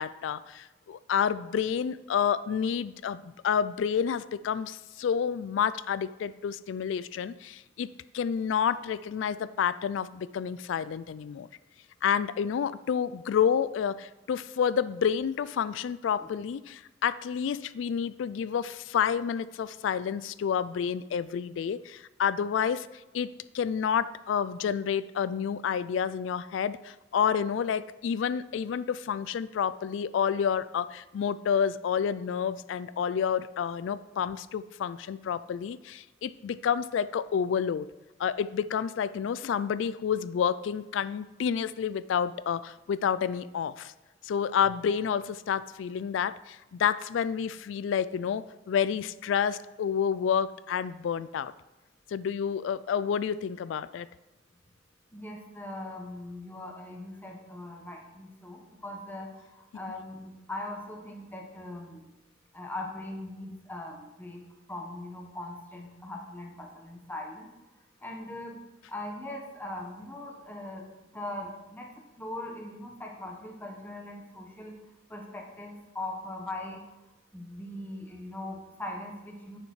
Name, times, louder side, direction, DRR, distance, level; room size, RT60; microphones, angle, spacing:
voice 1, 0.0-11.5 12.0-22.9 23.1-37.9 38.2-43.9 44.2-51.5 52.1-54.1, left 7 dB, 75° left, 16 dB, 0.3 m, -29 dB
voice 2, 55.1-59.4 59.7-62.0 62.5-64.4 64.7-67.5 68.0-68.6 68.9-70.9 71.1-71.9 72.2-74.8 75.1-76.8 77.3-79.6, left 1 dB, 10° left, 1 dB, 1.4 m, -40 dB
9.7 x 6.5 x 4.8 m, 1.1 s
head